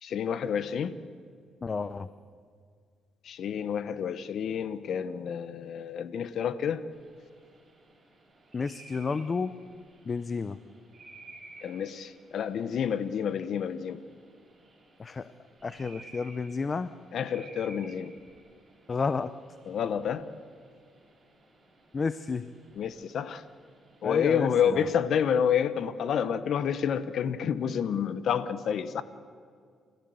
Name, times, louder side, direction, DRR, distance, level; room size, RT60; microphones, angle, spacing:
voice 1, 0.0-0.9 3.2-6.8 11.6-14.0 17.1-18.1 19.7-20.3 22.8-23.4 24.0-29.0, left 8 dB, 65° left, 14 dB, 1.1 m, -29 dB
voice 2, 1.6-2.1 8.5-9.5 10.0-10.6 15.0-15.3 15.6-16.9 18.9-19.3 21.9-22.5 24.0-24.9, left 4 dB, 35° left, 13 dB, 0.7 m, -31 dB
sound 1, 6.9-24.1, right 2 dB, 35° right, 6.9 m, -55 dB
29.5 x 15.0 x 8.0 m, 2.1 s
cardioid pair, 90°, 0 cm